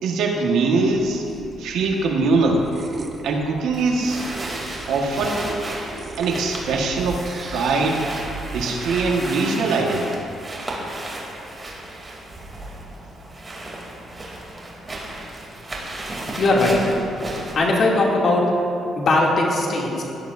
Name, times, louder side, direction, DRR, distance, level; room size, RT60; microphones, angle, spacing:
voice 1, 0.0-1.2 1.6-2.7 3.2-4.2 4.9-5.6 6.2-7.2 7.5-8.0 8.5-10.2, right 3 dB, 85° right, 0 dB, 1.6 m, -22 dB
sound 1, 0.8-8.9, right 4 dB, 45° right, 1.3 m, -39 dB
sound 2, 3.7-17.5, right 1 dB, 25° right, 3.0 m, -34 dB
voice 2, 16.4-16.8 17.5-18.4 18.9-20.0, left 2 dB, 55° left, -3 dB, 2.7 m, -19 dB
17.5 x 11.5 x 2.7 m, 2.7 s
cardioid pair, 90°, 0 cm